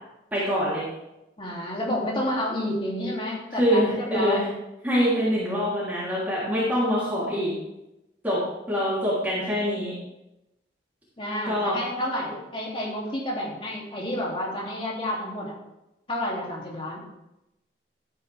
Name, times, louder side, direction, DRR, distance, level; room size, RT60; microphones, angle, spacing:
voice 1, 0.3-0.8 3.6-4.5 4.8-7.5 8.2-8.4 8.7-9.9 11.4-11.8, equal, 10° right, -9 dB, 3.2 m, -24 dB
voice 2, 1.4-4.4 11.2-15.5 16.1-17.0, left 1 dB, 30° left, -3 dB, 2.8 m, -30 dB
13.0 x 9.3 x 3.5 m, 0.92 s
head